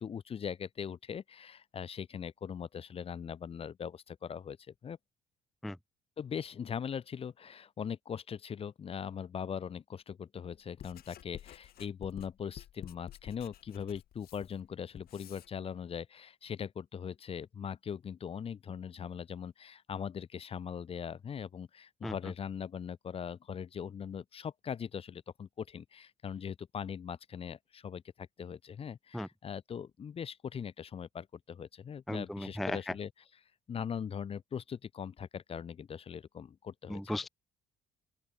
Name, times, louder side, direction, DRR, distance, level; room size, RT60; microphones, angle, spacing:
voice 1, 0.0-5.0 6.2-33.1 33.7-37.1, left 7 dB, 35° left, 0.8 m, -40 dB
Writing, 10.5-15.5, left 12 dB, 65° left, 3.0 m, -51 dB
voice 2, 32.1-32.9 36.9-37.3, left 1 dB, ahead, 0.4 m, -36 dB
open air
cardioid pair, 110°, 17 cm